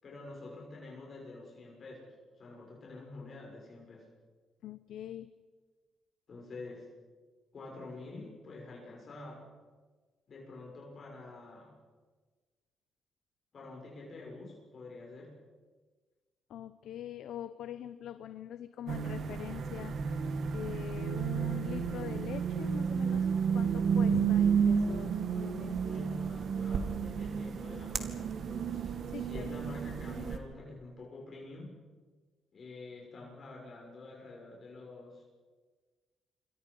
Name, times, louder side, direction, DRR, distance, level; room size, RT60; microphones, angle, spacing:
voice 1, 0.0-4.1 6.3-6.9 7.5-9.5 10.3-11.8 13.5-15.4 25.7-31.8 32.5-35.2, left 2 dB, 45° left, -2 dB, 6.3 m, -47 dB
voice 2, 4.6-5.3 16.5-20.1 20.5-25.9 29.1-29.5, left 11 dB, 75° left, 12 dB, 0.8 m, -43 dB
sound 1, 18.9-30.4, right 6 dB, 60° right, 2.2 m, -31 dB
28.0 x 24.0 x 5.5 m, 1.4 s
cardioid pair, 90°, 0 cm